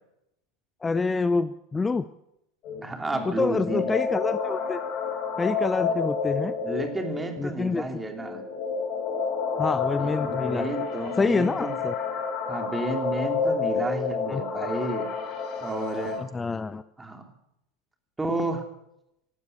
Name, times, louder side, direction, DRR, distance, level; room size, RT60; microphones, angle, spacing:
voice 1, 0.8-2.1 3.2-4.8 5.4-6.5 7.4-7.8 9.6-10.7 11.2-11.9 14.3-14.4 16.2-16.8, left 4 dB, 15° left, 15 dB, 0.6 m, -27 dB
sound 1, 2.6-16.2, left 5 dB, 45° left, 4.1 m, -30 dB
voice 2, 2.8-3.9 6.6-8.4 10.0-11.8 12.5-15.1 15.6-16.2 17.0-17.2 18.2-18.7, right 2 dB, 10° right, 5 dB, 2.8 m, -31 dB
17.5 x 12.5 x 6.6 m, 0.82 s
figure-of-eight pair, 80°, 0 cm